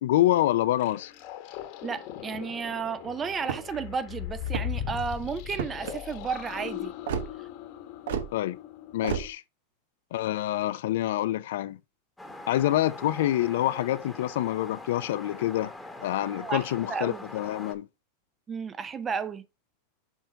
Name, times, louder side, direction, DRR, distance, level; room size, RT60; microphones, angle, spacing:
voice 1, 0.0-1.1 8.3-8.6 8.9-9.4 10.1-11.8 12.5-15.7 16.0-17.9, left 14 dB, 75° left, 0.5 m, -26 dB
sound 1, 0.8-9.3, left 11 dB, 50° left, 1.2 m, -39 dB
voice 2, 1.8-6.9 16.3-17.2 18.5-19.5, right 5 dB, 20° right, 0.6 m, -33 dB
sound 2, 3.4-3.8 4.4-4.9 5.5-5.9 7.1-7.3 8.1-8.3 9.0-9.3, right 8 dB, 80° right, 1.1 m, -31 dB
sound 3, 12.2-17.8, left 1 dB, 5° left, 1.1 m, -43 dB
7.2 x 3.9 x 4.5 m
supercardioid pair, 145°, 0 cm